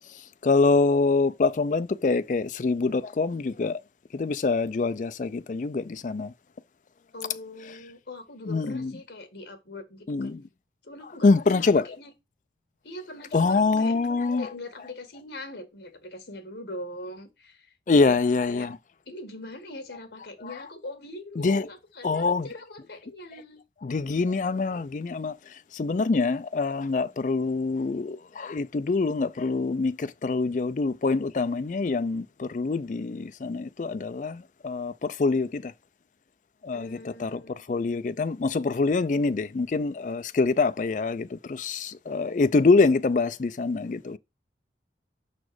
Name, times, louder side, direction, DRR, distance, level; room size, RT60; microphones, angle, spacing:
voice 1, 0.4-3.8 4.1-6.3 8.5-8.9 10.1-10.4 11.2-11.9 13.3-14.5 17.9-18.8 21.4-21.6 22.0-22.5 23.8-25.4 25.7-35.7 36.6-44.2, left 3 dB, 45° left, 0.4 m, -25 dB
voice 2, 7.1-10.3 10.8-12.1 12.8-14.0 14.3-18.2 18.5-18.7 19.0-23.6 36.7-37.6, left 1 dB, 75° left, 1.7 m, -41 dB
5.9 x 4.2 x 4.7 m
head